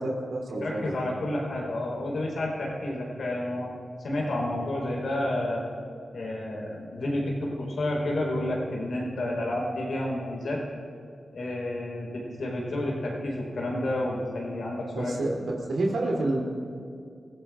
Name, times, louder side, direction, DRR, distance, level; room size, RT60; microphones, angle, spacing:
voice 1, 0.0-0.9 14.9-16.4, right 2 dB, 85° right, -2 dB, 3.1 m, -28 dB
voice 2, 0.6-3.7 4.0-5.6 6.1-10.6 11.3-15.2, left 1 dB, 75° left, -2 dB, 4.3 m, -30 dB
22.5 x 15.5 x 2.5 m, 2.4 s
cardioid pair, 50°, 0 cm